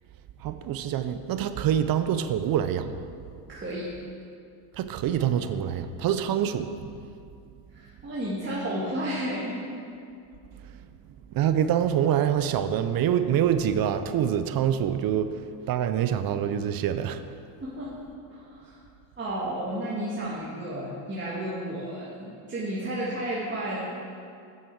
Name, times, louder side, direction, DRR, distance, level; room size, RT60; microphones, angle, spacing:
voice 1, 0.4-2.9 4.8-6.7 11.3-15.3 15.7-17.2, right 9 dB, 45° right, 11 dB, 0.6 m, -25 dB
voice 2, 3.5-3.9 7.7-9.7 17.6-17.9 18.3-18.8 19.2-23.8, right 1 dB, 25° right, -7 dB, 1.7 m, -32 dB
8.6 x 7.3 x 4.7 m, 2.4 s
supercardioid pair, 100°, 49 cm